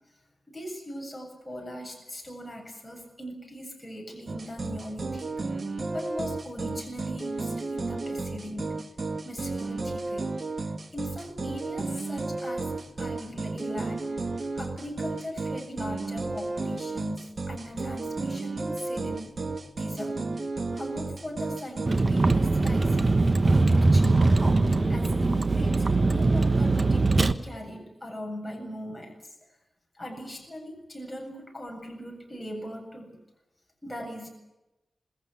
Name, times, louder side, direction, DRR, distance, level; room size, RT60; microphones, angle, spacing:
voice 1, 0.5-5.3 5.9-8.7 9.2-10.3 10.9-19.3 19.8-20.3 20.5-24.5 24.9-29.3 29.9-33.2 33.8-34.3, equal, 5° left, -1 dB, 7.6 m, -40 dB
sound 1, 4.3-21.9, right 3 dB, 50° right, 1.9 m, -33 dB
Vehicle, 21.9-27.3, right 3 dB, 35° right, 1.2 m, -21 dB
27.5 x 20.5 x 8.5 m, 0.97 s
wide cardioid pair, 125°, 0 cm